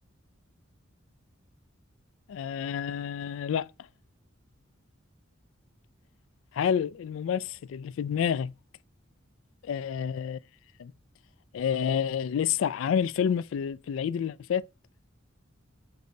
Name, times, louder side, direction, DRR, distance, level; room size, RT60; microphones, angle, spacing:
voice 1, 2.3-3.7 6.5-8.5 9.6-10.4 10.8-10.9 11.5-14.6, left 8 dB, 75° left, 0.3 m, -29 dB
6.9 x 2.7 x 5.1 m
head